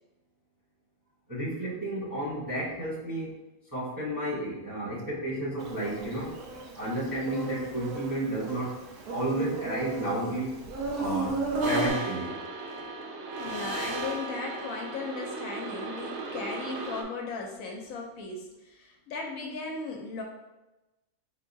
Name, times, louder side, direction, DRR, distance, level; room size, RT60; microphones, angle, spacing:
voice 1, 1.3-3.3 3.7-6.4 6.8-8.8 9.1-10.6 10.9-12.3, right 1 dB, 15° right, -9 dB, 0.8 m, -32 dB
Insect, 5.6-11.9, right 3 dB, 85° right, 1.2 m, -34 dB
sound 1, 11.6-17.0, right 2 dB, 65° right, 0.7 m, -36 dB
voice 2, 13.4-20.2, left 4 dB, 75° left, 1 dB, 1.0 m, -37 dB
4.5 x 3.4 x 2.6 m, 1.0 s
omnidirectional pair, 1.6 m